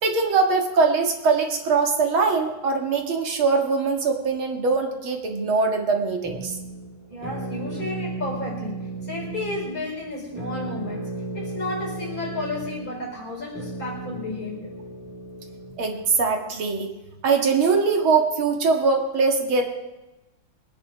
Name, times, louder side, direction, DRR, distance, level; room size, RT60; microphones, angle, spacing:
voice 1, 0.0-6.5 15.8-16.9 17.2-19.6, right 4 dB, 85° right, 3 dB, 2.6 m, -22 dB
sound 1, 6.2-16.1, right 3 dB, 5° right, 2.0 m, -35 dB
voice 2, 7.1-14.7, left 2 dB, 45° left, -1 dB, 5.3 m, -32 dB
22.5 x 9.9 x 5.0 m, 1.0 s
omnidirectional pair, 2.2 m